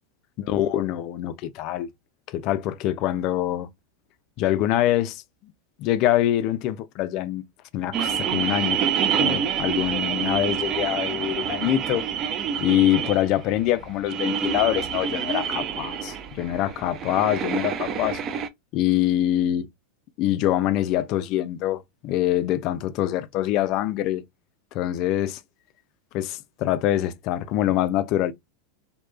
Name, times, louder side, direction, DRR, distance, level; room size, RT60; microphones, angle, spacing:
voice 1, 0.5-1.9 2.3-3.7 4.4-5.2 5.8-7.4 7.7-8.8 9.1-12.1 12.6-18.2 18.7-19.7 20.2-24.2 24.7-25.4 26.1-28.3, left 13 dB, 50° left, 0.3 m, -24 dB
sound 1, 7.9-18.5, right 8 dB, 35° right, 0.4 m, -27 dB
2.7 x 2.3 x 2.2 m
hypercardioid pair, 110°, 0 cm